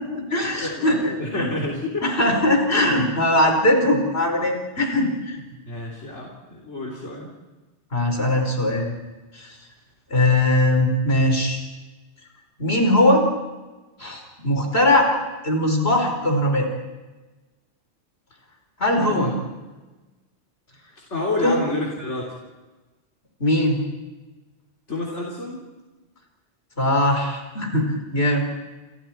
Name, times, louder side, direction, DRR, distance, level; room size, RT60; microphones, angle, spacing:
voice 1, 0.0-1.5 2.0-5.4 7.9-8.9 9.3-9.6 10.1-11.6 12.6-13.3 14.0-15.1 15.4-16.7 18.8-19.3 21.4-21.6 23.4-23.8 26.8-28.5, left 1 dB, 60° left, 2 dB, 5.0 m, -20 dB
voice 2, 0.5-2.0 5.7-7.3 19.0-19.4 21.0-22.3 24.9-25.6, left 2 dB, 75° left, -3 dB, 3.8 m, -29 dB
29.5 x 29.0 x 4.6 m, 1.2 s
omnidirectional pair, 1.2 m